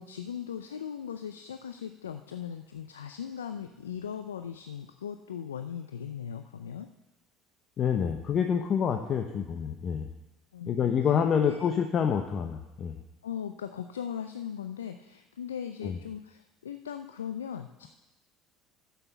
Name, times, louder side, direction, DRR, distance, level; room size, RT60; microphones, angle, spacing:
voice 1, 0.0-6.9 10.5-11.7 13.2-17.9, left 8 dB, 90° left, 8 dB, 0.4 m, -39 dB
voice 2, 7.8-10.1 10.7-12.9 15.8-16.0, left 7 dB, 45° left, 5 dB, 0.9 m, -27 dB
10.0 x 7.0 x 6.9 m, 0.99 s
hypercardioid pair, 70°, 0 cm